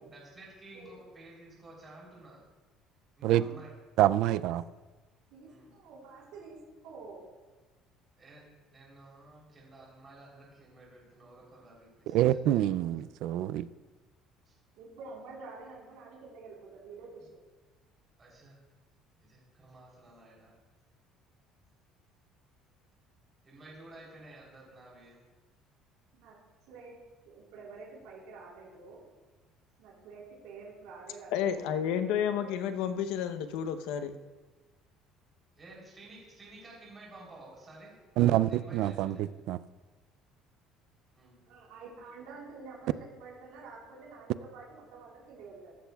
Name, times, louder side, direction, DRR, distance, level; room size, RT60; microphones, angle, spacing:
voice 1, 0.0-2.4 3.2-3.7 5.5-5.7 8.2-13.0 14.4-14.5 18.2-18.6 19.2-20.6 23.4-25.2 35.6-39.2 41.1-41.3, right 2 dB, 20° right, -4 dB, 3.6 m, -53 dB
voice 2, 4.0-4.6 12.1-13.7 38.2-39.6, right 13 dB, 60° right, 16 dB, 0.3 m, -26 dB
voice 3, 5.3-6.6 6.8-7.2 14.7-17.3 26.1-26.3 26.7-27.0 27.2-29.0 29.8-32.6 41.5-45.8, right 4 dB, 85° right, -4 dB, 4.1 m, -48 dB
voice 4, 31.3-34.2, left 8 dB, 85° left, 9 dB, 0.8 m, -31 dB
14.5 x 13.5 x 2.4 m, 1.3 s
cardioid pair, 170°, 0 cm